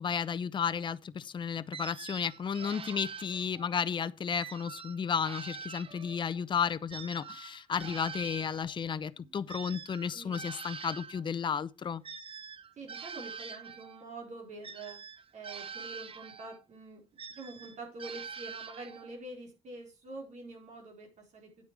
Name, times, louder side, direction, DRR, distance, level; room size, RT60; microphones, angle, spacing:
voice 1, 0.0-12.0, left 7 dB, 40° left, 0.6 m, -33 dB
sound 1, 1.7-3.8 4.3-6.4 6.9-11.2 12.0-14.0 14.6-16.6 17.2-19.2, right 6 dB, 45° right, 0.9 m, -45 dB
voice 2, 10.1-10.4 12.8-15.0 15.3-17.0 17.3-21.7, right 2 dB, 70° right, 4.6 m, -46 dB
9.5 x 8.5 x 4.7 m
cardioid pair, 105°, 13 cm